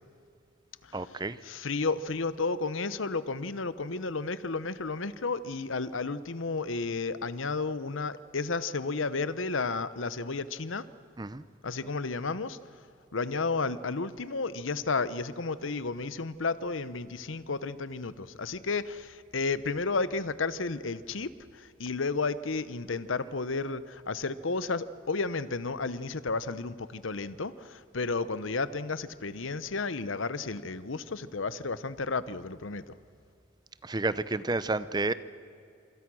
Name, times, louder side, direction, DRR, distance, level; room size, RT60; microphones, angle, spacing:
voice 1, 0.9-1.4 11.2-11.4 33.8-35.1, right 2 dB, 20° right, 15 dB, 0.6 m, -30 dB
voice 2, 1.4-10.9 11.6-12.6 13.1-32.9, left 4 dB, 80° left, 15 dB, 0.9 m, -32 dB
26.5 x 26.0 x 6.3 m, 2.4 s
head